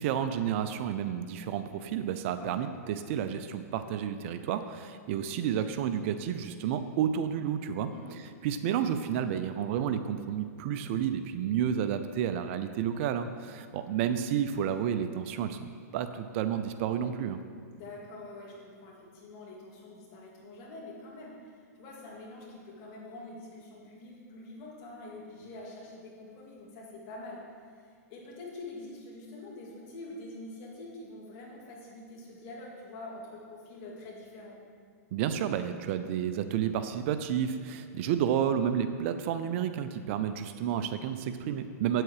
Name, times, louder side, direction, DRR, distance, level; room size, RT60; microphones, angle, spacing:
voice 1, 0.0-7.9 8.4-15.6 15.9-17.4 35.1-42.0, right 9 dB, 50° right, 10 dB, 0.5 m, -31 dB
voice 2, 17.6-34.6 41.9-42.0, left 2 dB, 45° left, -3 dB, 2.7 m, -46 dB
8.2 x 7.7 x 4.8 m, 2.2 s
hypercardioid pair, 130°, 9 cm